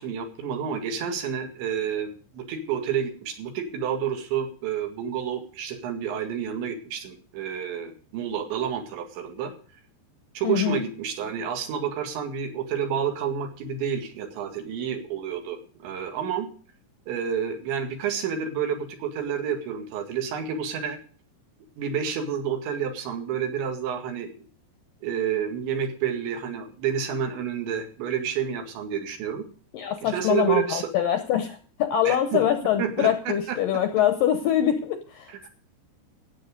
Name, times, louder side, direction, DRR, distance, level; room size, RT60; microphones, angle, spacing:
voice 1, 0.0-9.5 10.4-16.5 17.1-21.0 21.8-24.3 25.0-29.4 30.0-30.9 32.1-32.4 32.8-33.6 35.3-35.4, right 8 dB, 80° right, 5 dB, 4.3 m, -29 dB
voice 2, 10.4-10.8 29.7-35.5, left 10 dB, 75° left, 8 dB, 2.0 m, -24 dB
16.0 x 8.6 x 5.2 m, 0.42 s
omnidirectional pair, 5.2 m